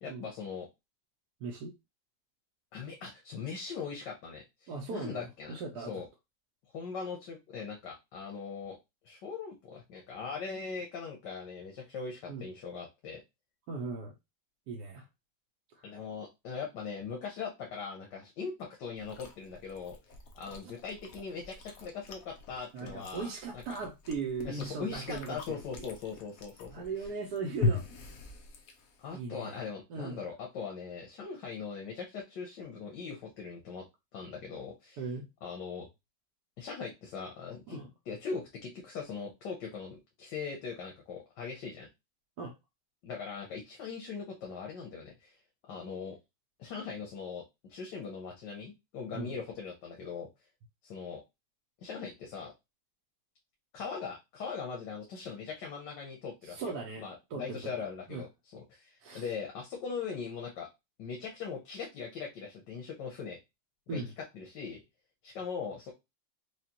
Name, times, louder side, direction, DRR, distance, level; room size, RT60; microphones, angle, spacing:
voice 1, 0.0-0.7 2.7-6.0 6.7-8.8 9.0-13.2 15.8-20.0 20.3-23.6 24.4-26.8 29.0-33.8 34.1-35.0 35.4-35.9 36.6-37.8 38.1-41.9 43.0-45.4 45.7-46.2 46.6-47.4 47.7-50.3 50.8-51.2 51.8-52.5 53.7-56.7 57.0-58.3 58.5-60.7 61.0-63.4 63.9-64.8 65.2-65.9, left 5 dB, 85° left, 0 dB, 1.6 m, -40 dB
voice 2, 1.4-1.7 4.7-6.0 12.3-12.5 13.7-14.1 14.7-15.1 15.7-15.9 20.6-20.7 22.7-25.9 26.7-28.1 29.1-29.6 29.9-30.2 35.0-35.3 37.7-37.9 42.4-42.5 49.1-49.3 56.4-57.0 57.3-57.7 58.1-58.3 59.0-59.3 63.9-64.1, right 4 dB, 70° right, 1 dB, 1.2 m, -38 dB
Chewing mastication, 19.0-29.1, left 3 dB, 60° left, 1.1 m, -40 dB
4.9 x 2.4 x 2.8 m, 0.22 s
omnidirectional pair, 1.8 m